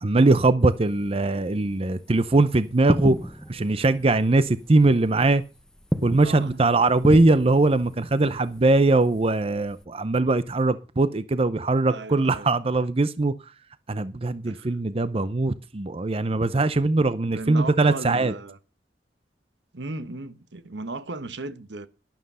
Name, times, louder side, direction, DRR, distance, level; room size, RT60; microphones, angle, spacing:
voice 1, 0.0-3.2 3.5-5.4 6.0-13.3 13.9-18.3, right 2 dB, 35° right, 0.6 m, -21 dB
sound 1, 0.6-9.8, equal, 5° left, 0.8 m, -33 dB
voice 2, 6.2-6.7 11.9-12.5 14.4-14.8 17.2-18.6 19.7-21.9, right 2 dB, 75° right, 1.2 m, -36 dB
11.5 x 11.5 x 5.5 m
head